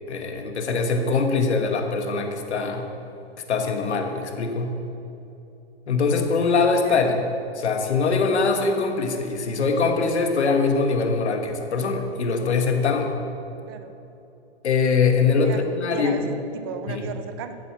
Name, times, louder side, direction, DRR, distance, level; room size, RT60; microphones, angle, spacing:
voice 1, 0.1-2.9 3.5-4.8 5.9-7.1 7.6-13.1 14.6-16.2 16.9-17.0, left 4 dB, 90° left, 4 dB, 1.6 m, -22 dB
voice 2, 6.8-7.2 13.7-13.9 15.4-17.6, right 7 dB, 25° right, 9 dB, 0.4 m, -35 dB
11.0 x 8.1 x 5.9 m, 2.8 s
hypercardioid pair, 150°, 33 cm